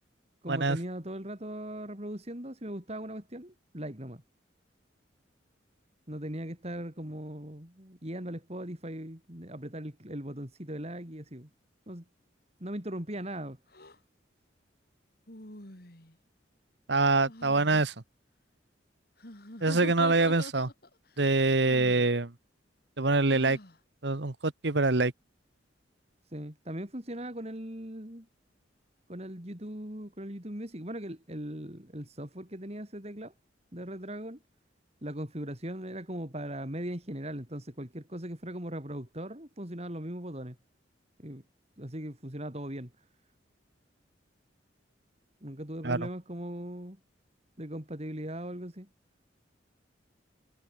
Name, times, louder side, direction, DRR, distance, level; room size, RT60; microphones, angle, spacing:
voice 1, 0.4-4.2 6.1-11.5 11.9-12.0 12.6-13.6 26.3-28.3 29.1-33.3 33.7-34.4 35.0-40.6 41.2-41.4 41.8-42.9 45.4-47.0 47.6-48.9, right 1 dB, 35° right, 4.0 m, -39 dB
sound 1, 13.7-14.0 15.3-16.2 17.3-17.8 19.2-20.9 21.6-22.1 23.3-23.8, left 1 dB, 55° left, 4.2 m, -44 dB
voice 2, 16.9-17.9 19.6-20.7 21.2-22.3 23.0-23.6 24.0-25.1 45.8-46.0, right 3 dB, 65° right, 1.4 m, -25 dB
head